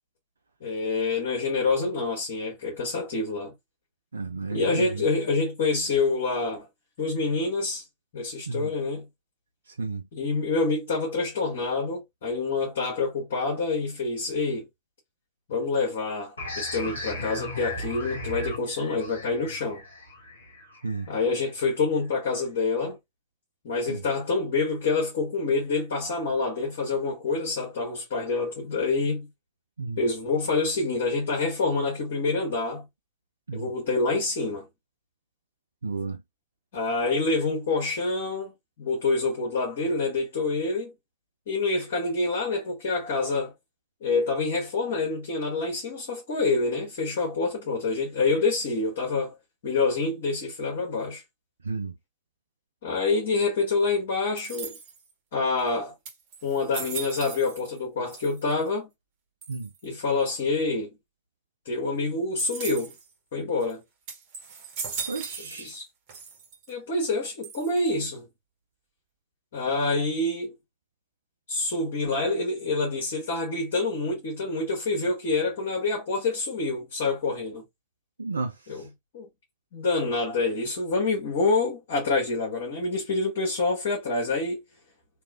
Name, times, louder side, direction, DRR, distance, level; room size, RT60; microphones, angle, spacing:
voice 1, 0.6-3.5 4.5-6.7 7.0-7.8 8.1-9.1 10.1-14.7 15.5-19.8 21.1-23.0 23.6-29.3 30.0-32.9 33.5-34.7 36.7-38.5 38.8-40.9 41.5-43.5 44.0-49.4 49.6-51.2 52.8-54.7 55.3-55.9 56.4-58.9 59.8-60.9 61.6-62.9 63.3-63.8 65.6-65.8 66.7-68.2 69.5-70.5 71.5-77.6 78.7-78.9 79.1-79.3 79.7-84.6, left 3 dB, 55° left, 1.4 m, -27 dB
voice 2, 4.1-5.0 8.5-8.7 9.8-10.0 20.8-21.1 23.9-24.0 29.8-30.0 33.5-33.7 35.8-36.2 51.6-51.9 59.5-59.7 65.1-65.7 78.2-78.8, right 4 dB, 75° right, 0.4 m, -32 dB
sound 1, 16.4-21.7, left 1 dB, 75° left, 1.2 m, -37 dB
sound 2, 54.4-55.1 55.7-55.8 56.0-57.8 58.1-58.7 59.4-59.9 62.4-63.1 63.6-63.7 64.1-65.8 66.1-66.7 67.4-68.0, right 6 dB, 40° right, 1.4 m, -38 dB
3.0 x 2.9 x 2.4 m
figure-of-eight pair, 90°, 0 cm